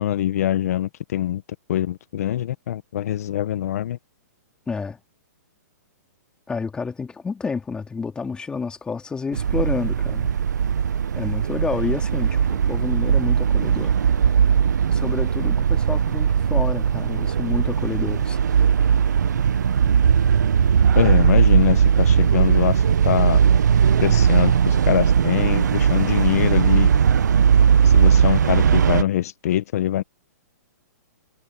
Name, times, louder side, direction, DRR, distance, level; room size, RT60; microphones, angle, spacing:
voice 1, 0.0-1.4 1.7-4.0 20.9-23.4 24.0-26.9 27.8-30.0, left 12 dB, 60° left, 1.3 m, -23 dB
voice 2, 4.7-5.0 6.5-10.3 11.2-14.5 14.9-18.4, left 5 dB, 10° left, 3.0 m, -29 dB
sound 1, 9.3-29.0, right 7 dB, 80° right, 0.9 m, -18 dB
hypercardioid pair, 145°, 9 cm